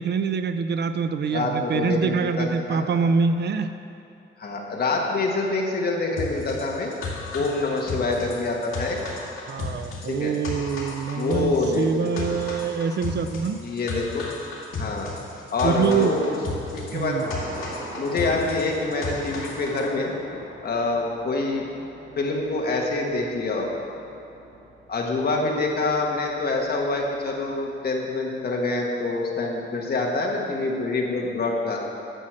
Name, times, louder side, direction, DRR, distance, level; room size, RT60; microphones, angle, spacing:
voice 1, 0.0-3.7 9.5-13.6 15.6-16.1 16.9-17.3, right 5 dB, 55° right, 10 dB, 0.4 m, -25 dB
voice 2, 1.3-2.9 4.4-6.9 7.3-9.0 10.0-10.4 11.2-12.2 13.6-14.2 14.8-15.2 15.5-16.4 16.7-17.2 18.0-20.2 20.6-21.7 22.1-23.8 24.9-31.8, left 3 dB, 50° left, -1 dB, 1.5 m, -26 dB
sound 1, 6.2-19.9, left 3 dB, 70° left, 2.1 m, -34 dB
Thunder, 16.4-27.6, right 2 dB, 75° right, 2.6 m, -43 dB
9.8 x 6.4 x 7.5 m, 2.7 s
wide cardioid pair, 175°, 21 cm